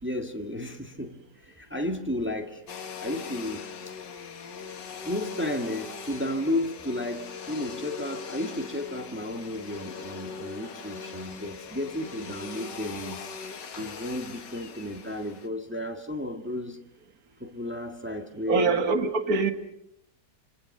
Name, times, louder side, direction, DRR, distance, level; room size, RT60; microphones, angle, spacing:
voice 1, 0.0-2.6 3.0-3.7 5.0-13.3 13.8-16.8 17.4-18.8, left 1 dB, 5° right, 1.7 m, -33 dB
Domestic sounds home sounds, 2.7-15.5, left 5 dB, 80° left, 2.2 m, -41 dB
voice 2, 18.5-19.5, right 4 dB, 55° right, 2.3 m, -24 dB
26.5 x 26.5 x 6.7 m
omnidirectional pair, 1.9 m